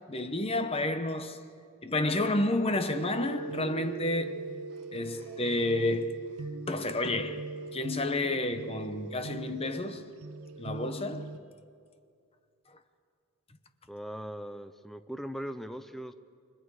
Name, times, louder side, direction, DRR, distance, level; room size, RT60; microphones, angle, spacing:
voice 1, 0.0-1.4 1.8-4.6 4.9-6.2 6.7-7.4 7.7-10.1 10.6-11.3, left 2 dB, 25° left, 0.9 m, -30 dB
sound 1, 2.9-11.4, right 4 dB, 80° right, 0.8 m, -40 dB
voice 2, 13.9-16.1, equal, ahead, 0.6 m, -39 dB
29.0 x 24.5 x 4.9 m
head